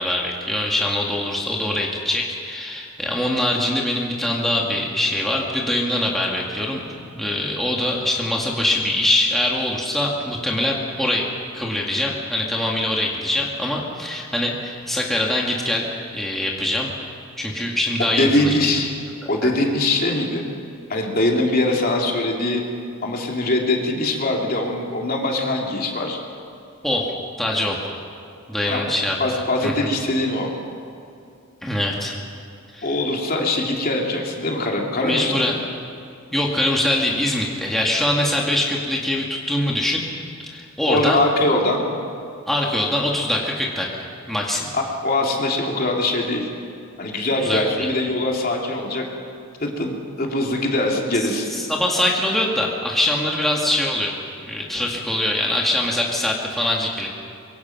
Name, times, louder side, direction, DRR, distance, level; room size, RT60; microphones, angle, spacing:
voice 1, 0.0-11.3 11.5-15.8 16.1-16.9 17.4-18.6 19.2-19.3 26.8-27.1 27.4-27.8 28.5-29.2 29.6-29.9 31.6-32.1 32.7-32.9 35.0-35.6 36.3-40.0 40.4-41.2 42.5-44.7 47.4-47.9 51.5-54.1 54.5-57.1, left 1 dB, ahead, -3 dB, 2.0 m, -23 dB
voice 2, 18.2-18.9 19.3-20.4 20.9-22.6 23.0-26.2 28.6-28.8 29.2-30.5 32.8-35.6 40.9-41.8 44.7-46.5 47.0-49.0 49.6-51.5, left 2 dB, 45° left, 0 dB, 2.9 m, -22 dB
24.5 x 23.0 x 5.9 m, 2.5 s
head